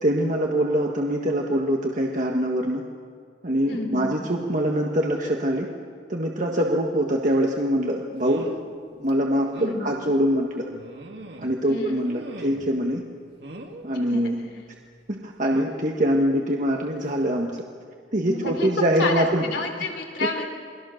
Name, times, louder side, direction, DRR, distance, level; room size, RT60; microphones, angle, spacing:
voice 1, 0.0-2.8 3.4-5.7 6.1-8.5 9.0-10.6 11.4-13.0 13.8-14.4 15.1-17.6 18.1-19.4, equal, 45° right, 0 dB, 1.6 m, -24 dB
voice 2, 3.7-4.1 9.6-9.8 11.6-12.0 14.1-14.2 18.3-18.7 19.0-20.5, left 3 dB, 70° left, 2 dB, 3.4 m, -29 dB
sound 1, 7.3-7.4 8.2-8.7 9.1-9.2 9.5-9.8 10.7-11.6 12.0-12.8 13.4-13.9 15.4-15.8 17.0-17.2 17.6-17.7, right 1 dB, 65° right, 2.1 m, -41 dB
28.5 x 20.5 x 6.6 m, 2.1 s
head